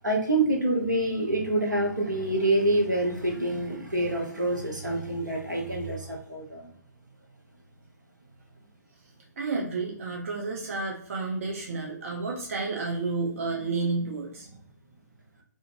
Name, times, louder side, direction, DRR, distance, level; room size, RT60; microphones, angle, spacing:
voice 1, 0.0-6.7 14.0-14.1, right 1 dB, 80° right, -1 dB, 0.9 m, -26 dB
voice 2, 9.4-14.5, right 3 dB, 45° right, -2 dB, 0.5 m, -31 dB
2.5 x 2.5 x 2.6 m, 0.63 s
figure-of-eight pair, 130°, 10 cm